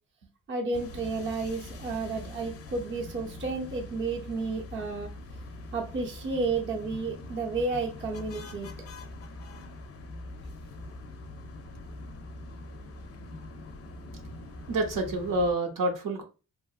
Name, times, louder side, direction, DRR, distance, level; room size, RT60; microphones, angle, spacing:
voice 1, 0.5-5.1 5.7-8.7, right 3 dB, 35° right, 0.7 m, -32 dB
sound 1, 0.7-15.5, left 2 dB, 45° left, 0.4 m, -43 dB
voice 2, 14.7-16.2, right 2 dB, 70° right, 0.7 m, -28 dB
2.8 x 2.4 x 2.3 m
wide cardioid pair, 135°, 34 cm